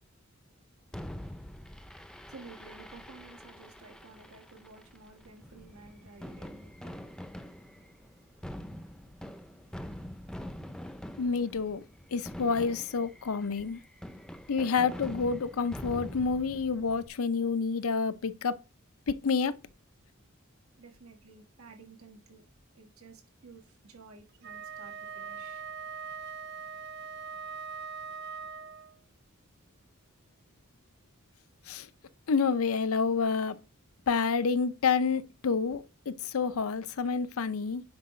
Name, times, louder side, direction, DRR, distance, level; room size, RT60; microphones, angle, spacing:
Fireworks, 0.9-17.1, equal, 5° left, 0.5 m, -45 dB
voice 1, 2.3-11.2 20.8-22.5 22.7-25.6 31.6-31.7, right 3 dB, 85° right, 1.5 m, -54 dB
voice 2, 11.2-11.8 12.1-13.8 14.5-18.6 19.1-19.6 31.7-31.9 32.3-33.6 34.1-37.8, left 5 dB, 85° left, 0.6 m, -28 dB
Wind instrument woodwind instrument, 24.3-29.0, right 6 dB, 50° right, 0.4 m, -41 dB
9.6 x 4.7 x 3.2 m
head